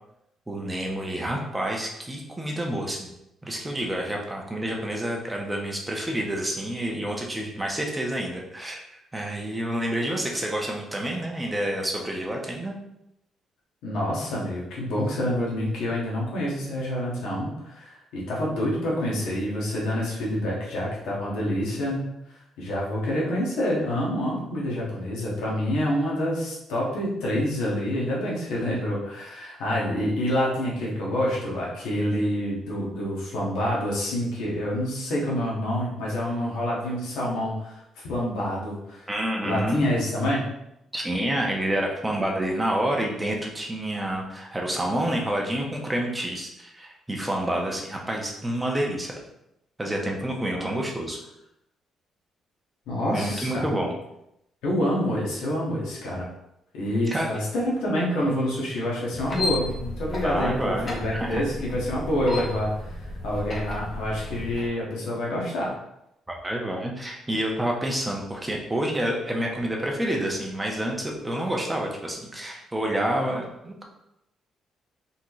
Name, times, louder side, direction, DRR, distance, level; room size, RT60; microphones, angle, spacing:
voice 1, 0.5-3.1 3.4-12.7 39.1-39.9 40.9-49.1 49.8-51.2 53.1-53.9 57.1-57.4 60.2-61.4 66.3-73.8, right 1 dB, 15° right, -1 dB, 1.0 m, -28 dB
voice 2, 13.8-22.1 22.6-39.1 39.4-40.5 50.6-50.7 52.9-53.6 54.6-56.3 56.7-65.7, left 1 dB, 90° left, -4 dB, 1.6 m, -27 dB
sound 1, 59.1-64.7, left 1 dB, 30° left, 1.2 m, -33 dB
4.2 x 3.8 x 3.1 m, 0.82 s
cardioid pair, 90°, 0 cm